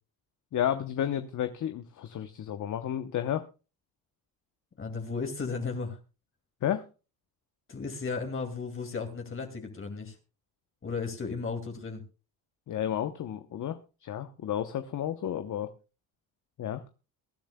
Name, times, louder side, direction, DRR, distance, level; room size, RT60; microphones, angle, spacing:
voice 1, 0.5-3.4 6.6-6.8 12.7-15.7 16.6-16.8, left 10 dB, 50° left, 9 dB, 0.9 m, -32 dB
voice 2, 4.8-6.0 7.7-10.2 10.8-12.0, left 4 dB, 30° left, 3 dB, 2.4 m, -35 dB
23.0 x 10.5 x 2.3 m, 0.31 s
cardioid pair, 95°, 39 cm